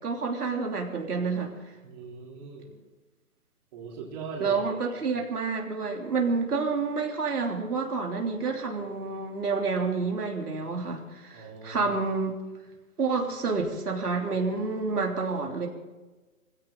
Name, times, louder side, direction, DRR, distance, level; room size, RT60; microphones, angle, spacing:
voice 1, 0.0-1.5 4.4-12.4 13.0-15.7, right 4 dB, 90° right, 1 dB, 3.3 m, -29 dB
voice 2, 1.8-2.7 3.7-5.0 11.3-11.9, right 5 dB, 30° right, -2 dB, 3.8 m, -40 dB
22.0 x 16.0 x 3.9 m, 1.2 s
hypercardioid pair, 160°, 45 cm